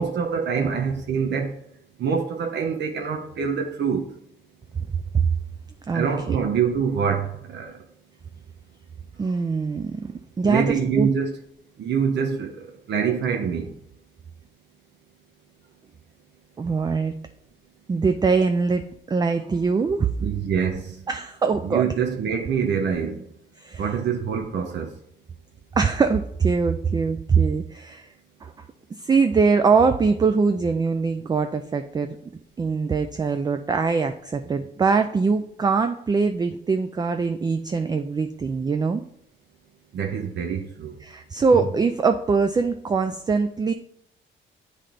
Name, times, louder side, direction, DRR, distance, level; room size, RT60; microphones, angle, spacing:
voice 1, 0.0-1.6 2.0-4.1 5.9-7.8 10.4-11.3 11.8-13.7 20.2-21.0 21.6-23.2 23.8-24.9 39.9-40.9, right 6 dB, 65° right, 3 dB, 0.8 m, -25 dB
voice 2, 5.9-6.4 9.2-11.1 16.6-17.2 17.9-20.1 21.1-21.9 23.6-23.8 25.7-28.1 28.4-28.5 29.0-32.2 32.6-39.0 41.0-43.7, right 5 dB, 20° right, 8 dB, 0.3 m, -22 dB
8.5 x 3.3 x 3.8 m, 0.73 s
cardioid pair, 90°, 20 cm